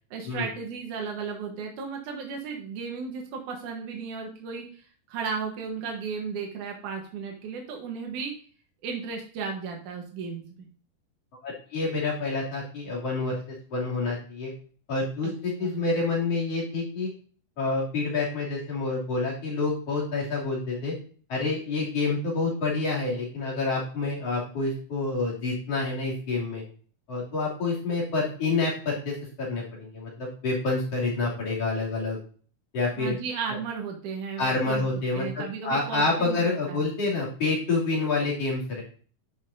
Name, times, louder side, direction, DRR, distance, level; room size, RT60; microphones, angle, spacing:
voice 1, 0.1-8.3 8.8-10.4 15.2-15.3 15.6-15.8 33.0-34.8 35.1-36.4 36.7-36.8, right 5 dB, 80° right, 2 dB, 2.8 m, -34 dB
voice 2, 11.4-13.4 13.7-14.5 14.9-17.1 17.6-21.0 21.3-26.6 27.1-32.2 32.7-33.1 34.4-38.8, left 3 dB, 55° left, -5 dB, 3.8 m, -28 dB
11.0 x 6.3 x 2.7 m, 0.43 s
omnidirectional pair, 3.4 m